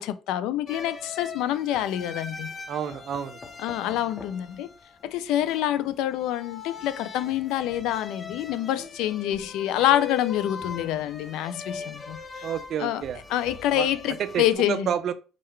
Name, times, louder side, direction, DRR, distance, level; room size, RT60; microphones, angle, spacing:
voice 1, 0.0-2.5 3.6-4.7 5.0-12.2 12.8-13.0 13.3-14.9, left 12 dB, 85° left, 0.4 m, -26 dB
sound 1, 0.7-14.5, left 6 dB, 30° left, 0.6 m, -40 dB
voice 2, 2.7-3.4 12.4-13.2 13.7-13.9 14.2-15.1, right 8 dB, 55° right, 0.5 m, -29 dB
4.3 x 3.8 x 3.2 m
cardioid pair, 115°, 0 cm